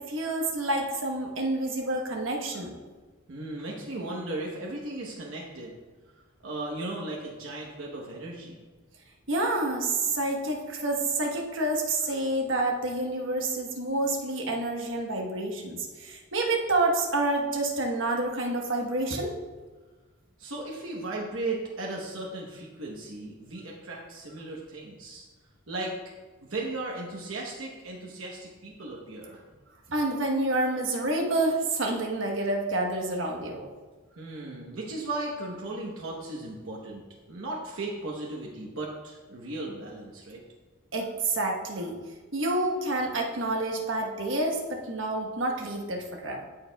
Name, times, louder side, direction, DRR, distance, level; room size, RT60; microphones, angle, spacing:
voice 1, 0.0-2.7 9.3-19.3 29.9-33.7 40.9-42.0 42.3-46.5, right 2 dB, 70° right, 0 dB, 1.1 m, -28 dB
voice 2, 3.3-5.7 6.4-8.6 20.4-25.2 25.7-25.9 26.5-29.4 34.2-37.0 37.3-40.4, right 2 dB, 90° right, -2 dB, 1.0 m, -36 dB
14.5 x 4.8 x 2.3 m, 1.3 s
head